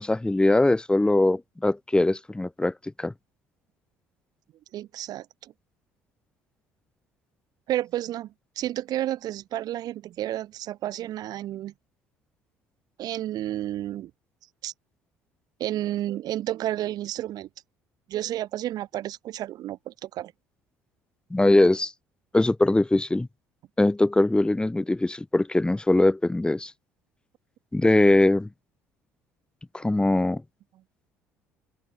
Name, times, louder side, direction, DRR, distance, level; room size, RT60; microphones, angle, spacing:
voice 1, 0.0-3.1 21.3-21.9 22.3-23.3 23.8-26.7 27.7-28.5 29.7-30.4, left 2 dB, 10° left, 2.2 m, -21 dB
voice 2, 4.7-5.5 7.7-11.7 13.0-14.1 14.6-14.7 15.6-17.5 18.1-20.3, right 13 dB, 55° right, 3.3 m, -31 dB
figure-of-eight pair, 55°, 8 cm